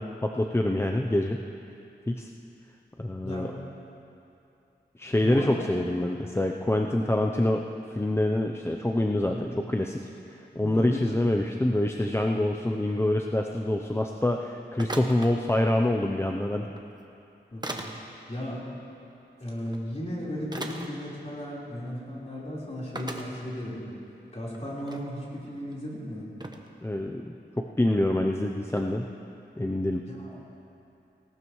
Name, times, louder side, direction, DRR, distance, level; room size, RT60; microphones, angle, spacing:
voice 1, 0.0-1.4 2.1-2.3 3.0-3.5 5.0-7.6 7.9-16.7 26.8-29.1 29.6-30.0, left 1 dB, 15° left, 2 dB, 0.6 m, -26 dB
voice 2, 3.2-3.5 5.1-5.7 9.3-9.4 10.6-11.1 17.5-17.9 18.3-18.6 19.4-23.8 24.3-26.3 29.9-30.4, equal, 35° left, -7 dB, 4.1 m, -35 dB
sound 1, 14.8-15.3 16.7-16.8 17.6-17.9 19.7-19.8 20.5-20.9 21.8-21.9 22.2-22.3 23.0-23.2 23.9-24.0 24.4-25.0 25.7-25.8 26.4-26.7 28.7-28.8, right 2 dB, 25° right, 1.1 m, -37 dB
19.5 x 18.0 x 3.1 m, 2.7 s
wide cardioid pair, 85°, 19 cm